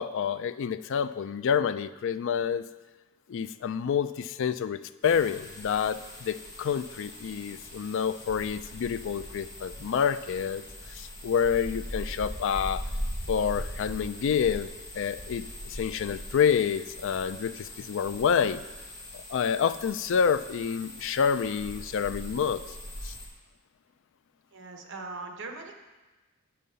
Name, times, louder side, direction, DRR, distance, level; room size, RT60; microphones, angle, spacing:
voice 1, 0.0-2.6 3.3-10.6 10.9-12.8 13.3-14.7 14.9-18.6 19.1-22.6 23.0-23.1, left 7 dB, 60° left, 14 dB, 0.4 m, -28 dB
sound 1, 5.0-23.3, equal, 20° left, 1.4 m, -40 dB
voice 2, 24.5-25.7, right 3 dB, 60° right, 3 dB, 1.0 m, -40 dB
7.4 x 5.5 x 6.8 m, 1.2 s
head